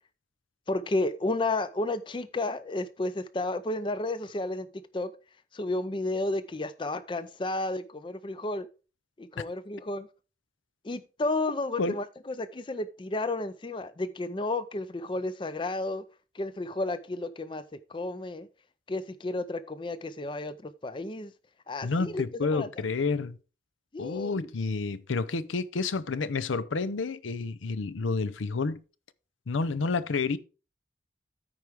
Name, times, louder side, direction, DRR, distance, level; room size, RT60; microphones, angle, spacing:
voice 1, 0.7-4.7 4.9-5.1 5.5-8.7 9.2-10.1 10.8-16.0 16.3-17.6 17.9-18.5 18.9-21.3 21.7-22.2 22.5-22.7 23.9-24.5, left 2 dB, 25° left, 0.4 m, -32 dB
voice 2, 21.8-23.4 24.0-28.8 29.5-30.4, left 4 dB, 85° left, 0.6 m, -29 dB
14.0 x 4.7 x 3.5 m
head